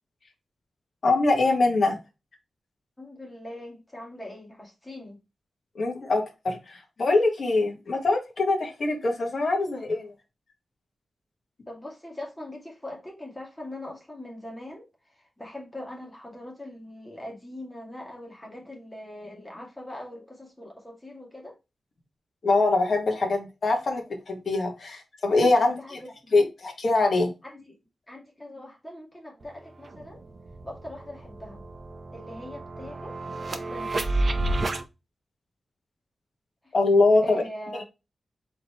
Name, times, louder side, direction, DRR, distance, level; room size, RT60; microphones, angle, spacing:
voice 1, 1.0-2.0 5.7-10.1 22.4-26.0 26.3-27.3 36.7-37.4, left 3 dB, 50° left, 1.5 m, -23 dB
voice 2, 3.0-5.2 11.7-21.6 25.6-26.4 27.4-27.7 28.1-30.2 30.6-31.6 32.1-33.2 33.5-34.2 36.6-36.7 37.2-37.8, left 1 dB, 10° left, 2.0 m, -41 dB
sound 1, 29.4-29.5 29.8-34.8, right 2 dB, 40° right, 0.7 m, -31 dB
4.4 x 3.8 x 3.1 m
wide cardioid pair, 150°, 0 cm